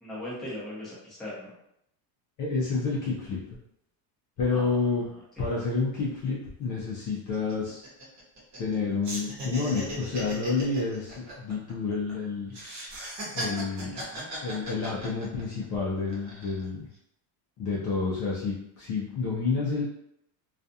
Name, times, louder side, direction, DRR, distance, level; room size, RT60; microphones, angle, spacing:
voice 1, 0.0-1.5 4.5-5.5 13.4-14.3, left 1 dB, ahead, -9 dB, 0.8 m, -40 dB
voice 2, 2.4-3.4 4.4-5.1 5.4-7.8 8.6-12.5 13.3-14.0 14.4-16.9 17.6-19.8, left 4 dB, 40° left, -6 dB, 0.5 m, -29 dB
sound 1, 6.2-6.3 6.6-6.8 7.1-8.8 9.0-12.1 12.5-15.6 16.1-16.6, right 1 dB, 35° right, 1.0 m, -38 dB
2.4 x 2.4 x 2.6 m, 0.77 s
cardioid pair, 145°, 50 cm